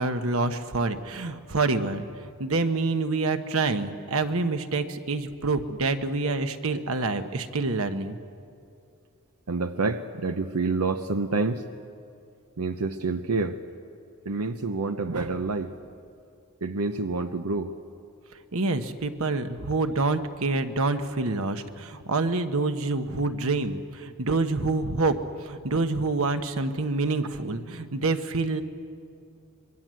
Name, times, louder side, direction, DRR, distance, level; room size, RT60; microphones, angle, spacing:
voice 1, 0.0-8.2 18.5-25.2 25.4-28.6, right 3 dB, 65° right, 8 dB, 1.2 m, -27 dB
voice 2, 9.5-11.6 12.6-13.6 14.3-15.7 16.6-17.7, right 3 dB, 85° right, 7 dB, 0.8 m, -28 dB
26.0 x 22.5 x 7.7 m, 2.4 s
head